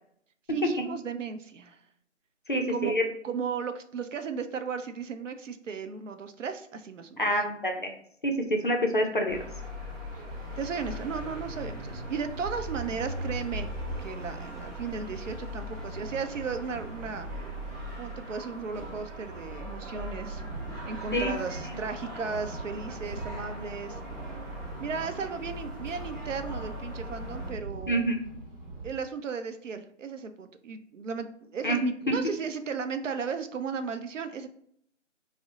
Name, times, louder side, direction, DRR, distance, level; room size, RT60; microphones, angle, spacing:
voice 1, 0.5-1.8 2.7-2.9 3.2-7.3 10.6-13.7 14.0-17.3 18.0-20.4 20.8-24.0 24.8-28.1 28.8-34.5, right 5 dB, 80° right, 8 dB, 0.5 m, -35 dB
voice 2, 2.5-3.0 7.2-7.9 8.2-9.4 21.1-21.3 27.9-28.2 31.6-31.8, equal, 45° left, 3 dB, 0.4 m, -27 dB
sound 1, 9.3-27.5, equal, 15° right, 0.6 m, -39 dB
sound 2, 20.1-29.0, right 2 dB, 45° right, 1.0 m, -41 dB
2.5 x 2.0 x 3.9 m, 0.66 s
figure-of-eight pair, 160°, 37 cm